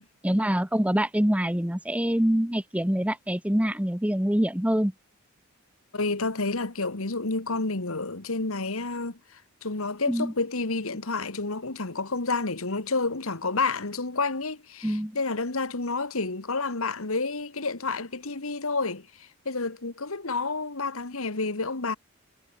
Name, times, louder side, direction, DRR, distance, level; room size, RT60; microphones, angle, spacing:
voice 1, 0.2-4.9 10.1-10.3 14.8-15.2, equal, 5° right, 1.2 m, -25 dB
voice 2, 5.9-22.0, left 3 dB, 70° left, 1.8 m, -30 dB
head